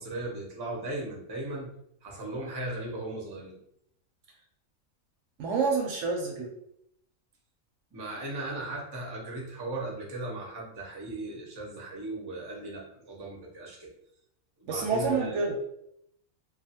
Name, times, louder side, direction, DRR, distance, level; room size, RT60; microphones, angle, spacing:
voice 1, 0.0-1.7 2.0-3.6 7.9-13.9 14.6-15.4, right 2 dB, 30° right, -2 dB, 0.4 m, -37 dB
voice 2, 5.4-6.5 14.7-15.6, right 4 dB, 70° right, 1 dB, 0.8 m, -28 dB
2.5 x 2.3 x 2.7 m, 0.74 s
omnidirectional pair, 1.5 m